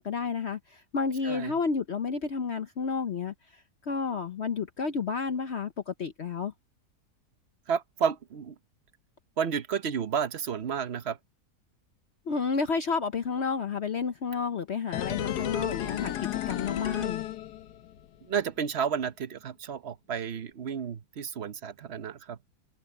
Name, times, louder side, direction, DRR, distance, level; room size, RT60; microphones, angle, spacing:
voice 1, 0.0-6.5 12.3-17.3, left 5 dB, 50° left, 0.9 m, -31 dB
voice 2, 7.7-8.5 9.4-11.2 18.3-22.4, right 7 dB, 50° right, 1.0 m, -31 dB
sound 1, 14.9-18.0 18.3-18.4, left 11 dB, 85° left, 1.4 m, -33 dB
omnidirectional pair, 1.7 m